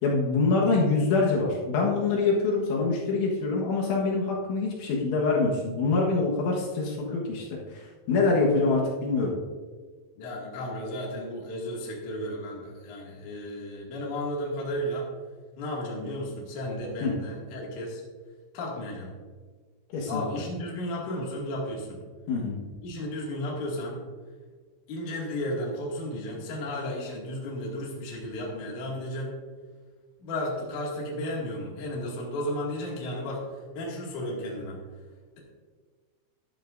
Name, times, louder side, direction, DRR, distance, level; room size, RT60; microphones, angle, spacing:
voice 1, 0.0-9.3 17.0-17.1 19.9-20.3 22.3-22.6, left 3 dB, 75° left, -3 dB, 3.7 m, -25 dB
voice 2, 10.2-15.1 15.6-18.0 18.5-19.1 20.1-22.0 22.8-24.0 24.9-29.3 30.2-33.4 33.7-34.8, left 1 dB, 50° left, -3 dB, 2.9 m, -33 dB
14.0 x 11.5 x 2.6 m, 1.5 s
omnidirectional pair, 5.8 m